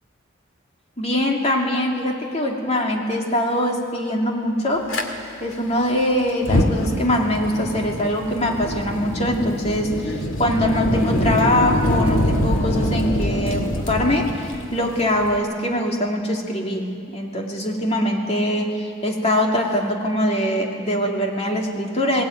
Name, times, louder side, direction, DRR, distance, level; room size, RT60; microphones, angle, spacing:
voice 1, 1.0-4.9 5.4-22.2, left 1 dB, 30° left, 1 dB, 2.6 m, -23 dB
Fire, 4.9-5.0 6.3-15.4, left 1 dB, 90° left, 2.1 m, -24 dB
19.5 x 18.0 x 9.2 m, 2.4 s
head